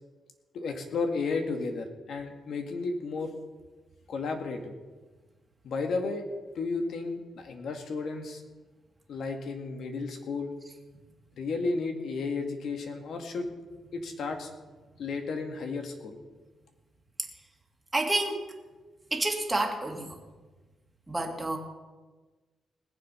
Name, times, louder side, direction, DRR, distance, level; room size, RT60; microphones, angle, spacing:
voice 1, 0.5-3.3 4.1-4.7 5.6-6.2 6.5-8.4 9.1-10.5 11.4-13.5 13.9-14.5 15.0-16.2, left 4 dB, 70° left, 4 dB, 1.9 m, -33 dB
voice 2, 17.9-18.4 19.1-20.2 21.1-21.6, right 2 dB, 15° right, 2 dB, 2.2 m, -29 dB
19.5 x 7.6 x 5.7 m, 1.3 s
cardioid pair, 95°, 0 cm